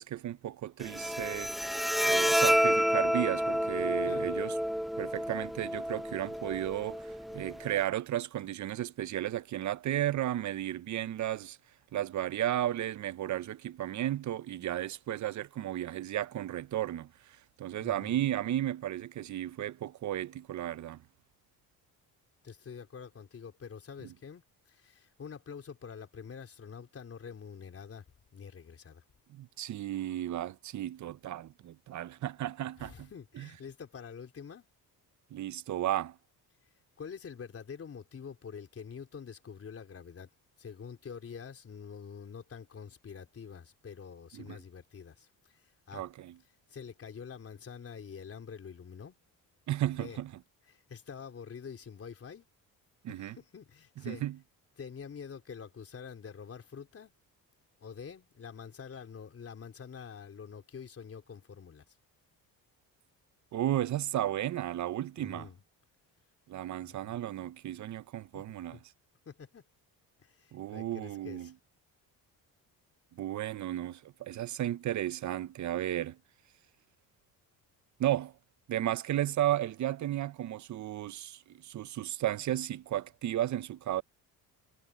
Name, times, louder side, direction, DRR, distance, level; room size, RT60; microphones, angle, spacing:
voice 1, 0.0-1.5 2.0-4.5 5.0-11.6 11.9-17.1 17.6-21.0 24.0-24.1 29.3-33.1 33.4-33.5 35.3-36.2 44.3-44.6 45.9-46.3 49.7-50.3 53.0-53.4 54.0-54.4 63.5-65.5 66.5-68.8 70.5-71.5 73.2-76.2 78.0-78.3 78.7-84.0, right 12 dB, 50° right, 0.7 m, -34 dB
Bowed string instrument, 0.8-7.8, equal, ahead, 0.6 m, -30 dB
voice 2, 4.0-4.4 17.8-18.2 22.4-28.0 28.3-29.0 32.8-34.7 37.0-40.3 40.6-45.3 45.9-46.0 46.7-49.2 49.9-50.2 50.7-52.5 53.1-54.2 54.8-57.1 57.8-61.8 65.2-65.6 66.8-67.3 68.3-68.4 68.7-68.8 69.3-69.6 70.2-71.5, left 6 dB, 40° left, 4.1 m, -46 dB
cardioid pair, 115°, 37 cm